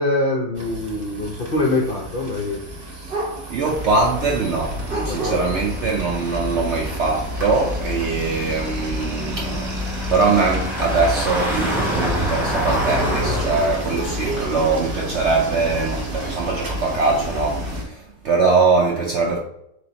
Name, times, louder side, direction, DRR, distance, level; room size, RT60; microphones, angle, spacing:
voice 1, 0.0-2.6 5.1-5.5, left 2 dB, 55° left, 0.6 m, -24 dB
sound 1, 0.5-17.8, right 2 dB, 40° right, 0.9 m, -32 dB
voice 2, 3.5-19.4, right 4 dB, 65° right, 0.7 m, -22 dB
sound 2, 3.7-17.8, left 1 dB, ahead, 0.6 m, -28 dB
3.3 x 3.0 x 3.9 m
omnidirectional pair, 1.7 m